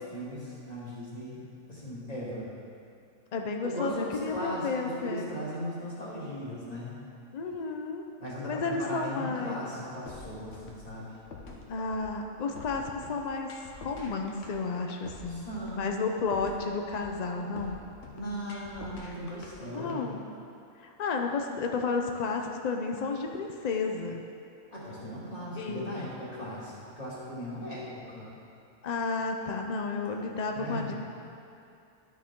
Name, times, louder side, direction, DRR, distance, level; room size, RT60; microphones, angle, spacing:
voice 1, 0.1-2.5 3.6-7.0 8.2-11.1 15.3-15.9 18.1-20.1 24.7-28.3 30.5-31.0, equal, 25° left, -8 dB, 2.2 m, -38 dB
voice 2, 3.3-5.3 7.3-8.1 8.5-9.6 11.7-13.5 13.7-17.8 19.7-20.2 20.8-24.2 25.6-26.1 28.8-30.9, left 4 dB, 85° left, 3 dB, 0.3 m, -32 dB
sound 1, 10.1-20.0, left 3 dB, 55° left, 1.2 m, -47 dB
11.5 x 6.6 x 3.7 m, 2.6 s
omnidirectional pair, 1.5 m